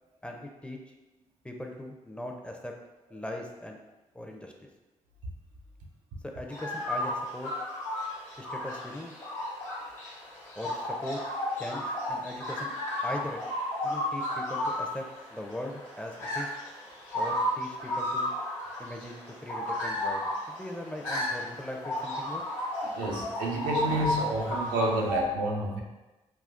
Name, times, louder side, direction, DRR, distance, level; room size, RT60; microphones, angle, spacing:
voice 1, 0.2-0.8 1.4-2.7 3.1-3.8 4.1-4.7 6.2-7.5 8.4-9.1 10.6-11.2 11.6-12.7 13.0-13.4 13.8-16.5 17.1-18.3 18.8-22.4, left 1 dB, 10° left, 1 dB, 0.5 m, -39 dB
sound 1, 6.5-25.2, left 1 dB, 90° left, 1.2 m, -33 dB
voice 2, 22.8-25.8, right 1 dB, 90° right, -1 dB, 0.5 m, -29 dB
3.5 x 2.3 x 2.4 m, 1.1 s
supercardioid pair, 45°, 13 cm